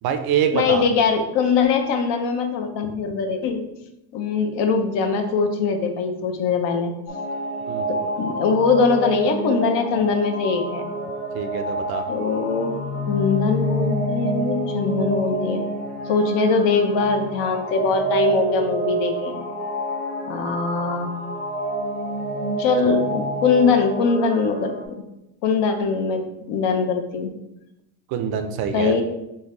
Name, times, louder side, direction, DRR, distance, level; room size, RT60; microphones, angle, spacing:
voice 1, 0.0-0.8 7.7-7.9 11.3-12.0 28.1-29.0, right 8 dB, 55° right, 7 dB, 0.5 m, -25 dB
voice 2, 0.5-3.6 4.1-6.9 7.9-10.8 12.1-15.6 16.1-19.4 20.3-21.1 22.6-25.0 25.4-27.3 28.7-29.0, left 5 dB, 60° left, 5 dB, 0.7 m, -22 dB
sound 1, 7.1-24.9, right 1 dB, 35° left, 1.0 m, -28 dB
3.9 x 2.1 x 3.7 m, 0.88 s
supercardioid pair, 110°, 47 cm